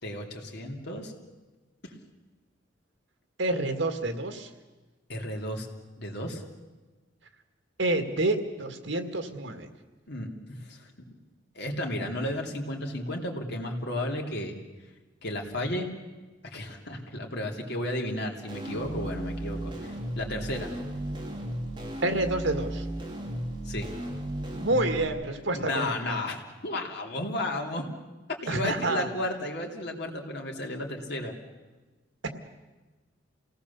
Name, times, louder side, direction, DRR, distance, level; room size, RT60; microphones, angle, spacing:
voice 1, 0.0-1.1 1.8-1.9 5.1-5.7 6.0-6.4 10.1-11.2 11.5-14.6 15.2-15.9 16.4-19.7 20.1-20.7 23.6-23.9 25.5-26.4 26.6-27.8 28.4-31.3, left 1 dB, 60° left, 1 dB, 2.9 m, -33 dB
voice 2, 3.4-4.5 7.8-9.7 22.0-22.8 24.5-26.3 28.5-29.1 32.2-32.3, right 2 dB, 85° right, 7 dB, 2.0 m, -28 dB
sound 1, 18.5-25.0, right 1 dB, 25° right, 2.9 m, -35 dB
28.0 x 18.0 x 7.1 m, 1.2 s
head